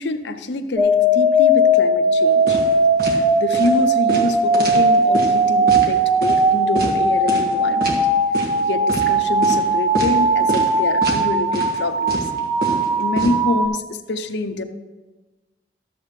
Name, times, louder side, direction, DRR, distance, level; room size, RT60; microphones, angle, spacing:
voice 1, 0.0-2.6 3.1-8.0 8.7-12.2 13.0-14.6, left 2 dB, 70° left, 8 dB, 0.6 m, -26 dB
sound 1, 0.8-13.7, right 1 dB, 25° right, 0.7 m, -18 dB
sound 2, 2.5-2.7 3.0-3.2 3.5-3.7 4.1-5.3 5.7-5.9 6.2-6.4 6.8-6.9 7.3-7.5 7.8-8.0 8.3-8.6 8.9-9.1 9.4-9.6 10.0-10.2 10.5-10.7 11.0-11.2 11.5-11.8 12.1-13.3, right 1 dB, 60° right, 1.6 m, -25 dB
13.0 x 7.3 x 3.2 m, 1.2 s
head